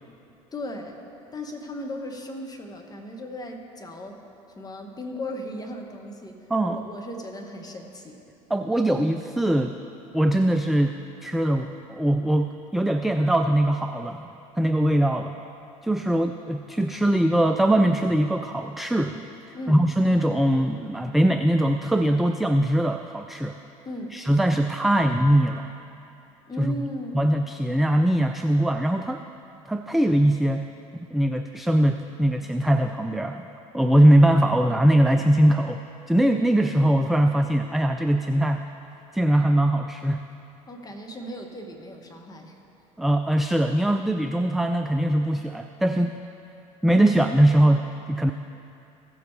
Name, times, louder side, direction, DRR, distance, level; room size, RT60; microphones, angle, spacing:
voice 1, 0.5-1.0 1.3-4.2 4.6-6.4 6.7-8.2 16.0-16.2 19.5-19.8 23.8-24.2 26.5-27.2 40.7-42.6, left 1 dB, 20° left, 2 dB, 1.4 m, -36 dB
voice 2, 8.5-9.7 10.1-10.9 11.2-14.2 14.6-15.4 15.8-19.2 19.7-23.5 24.1-25.7 26.7-26.8 27.1-29.2 29.7-30.7 31.1-33.5 33.7-38.6 39.1-40.2 43.0-46.2 46.8-48.3, right 1 dB, ahead, 6 dB, 0.3 m, -21 dB
16.0 x 7.0 x 3.3 m, 2.8 s
figure-of-eight pair, 60°, 18 cm